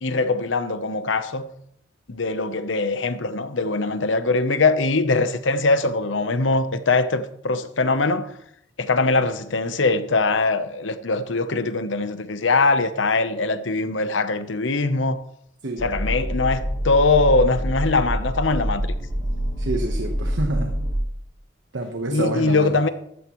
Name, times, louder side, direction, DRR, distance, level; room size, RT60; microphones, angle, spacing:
voice 1, 0.0-1.5 2.1-8.3 8.8-15.2 15.8-18.9 22.1-22.9, left 3 dB, 90° left, 0.9 m, -22 dB
sound 1, 15.8-21.0, equal, 40° left, 4.9 m, -26 dB
voice 2, 19.6-20.7 21.7-22.7, right 2 dB, 75° right, 1.2 m, -27 dB
14.5 x 12.0 x 3.1 m
head